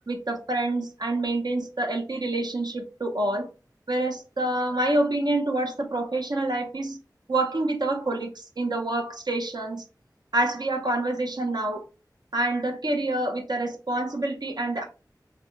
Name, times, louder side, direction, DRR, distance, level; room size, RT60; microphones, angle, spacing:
voice 1, 0.1-3.5 3.9-7.0 7.3-9.8 10.3-11.8 12.3-14.8, right 2 dB, 70° right, 0.8 m, -27 dB
3.4 x 2.2 x 3.9 m
wide cardioid pair, 45°, 7 cm